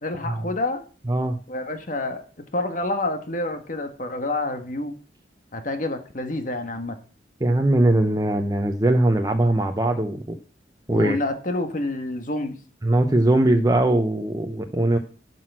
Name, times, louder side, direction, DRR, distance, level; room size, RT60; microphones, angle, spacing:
voice 1, 0.0-0.8 1.5-2.2 2.5-4.9 5.5-7.0 10.9-12.6, left 2 dB, 45° left, 7 dB, 1.6 m, -28 dB
voice 2, 7.4-10.4 10.9-11.2 12.8-15.0, right 1 dB, 20° right, 4 dB, 0.8 m, -20 dB
11.5 x 6.2 x 6.1 m, 0.38 s
head